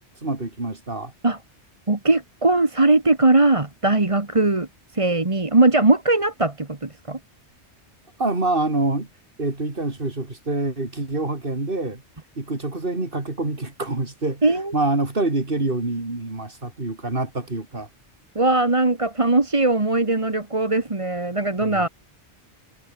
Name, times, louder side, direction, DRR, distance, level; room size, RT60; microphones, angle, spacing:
voice 1, 0.2-1.1 8.2-9.1 9.4-12.0 12.4-17.9 21.6-21.9, right 2 dB, 50° right, 3.7 m, -26 dB
voice 2, 1.9-4.7 4.9-7.2 14.4-14.7 18.4-21.9, right 2 dB, 30° right, 1.8 m, -20 dB
omnidirectional pair, 1.2 m